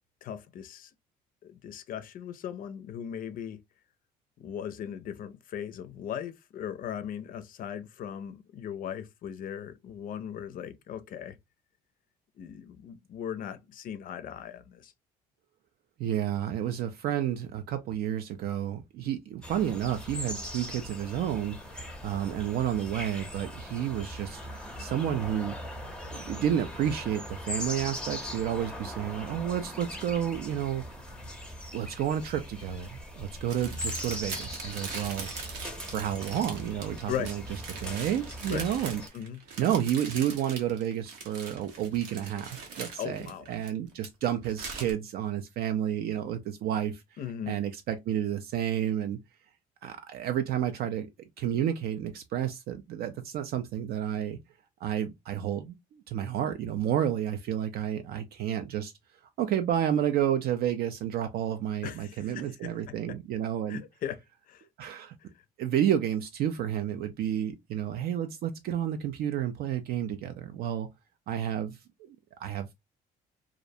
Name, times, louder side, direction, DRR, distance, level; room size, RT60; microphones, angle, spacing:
voice 1, 0.2-0.9 1.4-3.6 4.4-11.4 12.4-14.9 37.1-37.3 38.5-38.7 39.1-39.4 43.0-43.5 47.2-47.6 61.8-63.2 63.7-64.6, left 9 dB, 55° left, 0.4 m, -38 dB
voice 2, 16.0-25.6 26.1-30.8 31.7-35.3 35.9-37.4 37.8-39.0 39.6-47.0 47.5-49.2 49.8-51.1 51.4-54.4 54.8-58.9 59.4-63.8 64.8-65.1 65.6-70.9 71.3-72.7, right 10 dB, 65° right, 0.4 m, -31 dB
sound 1, 19.4-39.1, left 1 dB, 5° left, 0.5 m, -40 dB
sound 2, 33.5-44.1 44.4-44.9, right 4 dB, 90° right, 0.8 m, -42 dB
2.4 x 2.0 x 2.6 m
cardioid pair, 110°, 17 cm